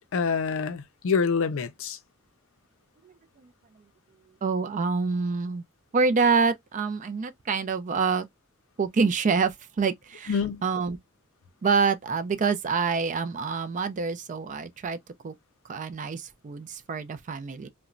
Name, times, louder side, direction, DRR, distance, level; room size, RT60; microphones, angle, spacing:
voice 1, 0.1-2.0 10.3-10.6, left 5 dB, 65° left, 0.5 m, -26 dB
voice 2, 3.0-3.5 4.4-5.6 5.9-8.3 8.8-11.0 11.6-15.0 15.2-15.3 15.6-17.7, right 5 dB, 35° right, 0.4 m, -26 dB
2.9 x 2.1 x 2.4 m
head